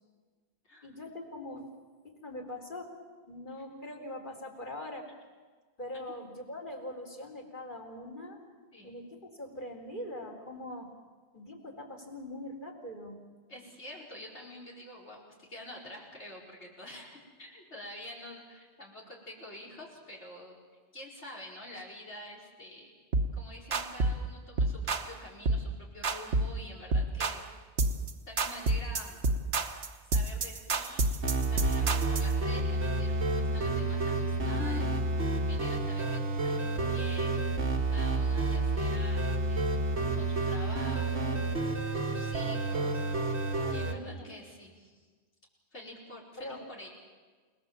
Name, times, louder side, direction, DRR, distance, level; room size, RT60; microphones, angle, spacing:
voice 1, 0.8-1.7 2.0-2.9 3.2-5.1 5.8-8.4 8.8-10.9 11.3-13.2 43.8-44.3 46.4-46.6, left 1 dB, 45° left, 0 dB, 4.2 m, -42 dB
voice 2, 5.9-6.3 8.7-8.9 13.5-20.6 20.9-22.9 23.3-27.4 28.3-29.2 30.1-35.0 35.4-39.8 40.2-41.5 41.9-43.4 43.7-45.1 45.7-46.9, left 1 dB, 85° left, -3 dB, 5.3 m, -47 dB
sound 1, 23.1-23.4 23.7-24.2 24.6-25.1 25.5-25.7 26.0-26.6 26.9-27.4 27.8-28.1 28.4-32.3, right 2 dB, 65° right, 1.5 m, -29 dB
sound 2, 31.2-43.9, right 2 dB, 90° right, 2.1 m, -30 dB
29.5 x 19.0 x 7.5 m, 1.4 s
omnidirectional pair, 1.1 m